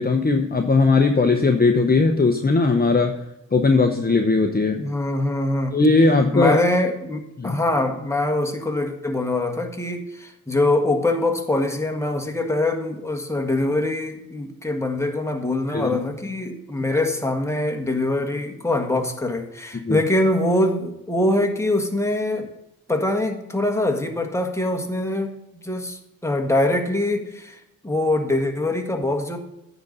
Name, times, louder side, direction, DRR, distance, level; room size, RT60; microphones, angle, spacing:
voice 1, 0.0-3.1 3.5-4.8 5.7-6.6 7.4-7.6 15.7-15.9 19.8-20.0, left 3 dB, 25° left, 4 dB, 0.9 m, -18 dB
voice 2, 4.8-5.8 6.3-22.5 22.9-25.3 25.6-29.4, left 1 dB, 10° left, 3 dB, 1.5 m, -23 dB
9.5 x 4.0 x 7.2 m, 0.88 s
cardioid pair, 55°, 36 cm